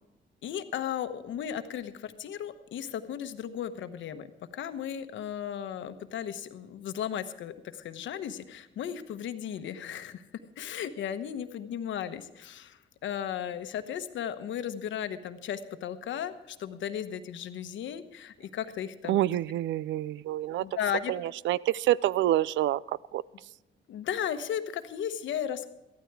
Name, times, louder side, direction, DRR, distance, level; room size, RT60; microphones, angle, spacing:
voice 1, 0.4-4.3 4.5-10.2 10.6-19.2 20.6-21.1 23.9-25.7, left 9 dB, 75° left, 9 dB, 1.1 m, -35 dB
voice 2, 19.1-20.6 21.1-21.2 21.5-22.8 23.1-23.2, right 14 dB, 70° right, 21 dB, 0.4 m, -27 dB
14.5 x 12.5 x 4.8 m, 0.95 s
cardioid pair, 90°, 20 cm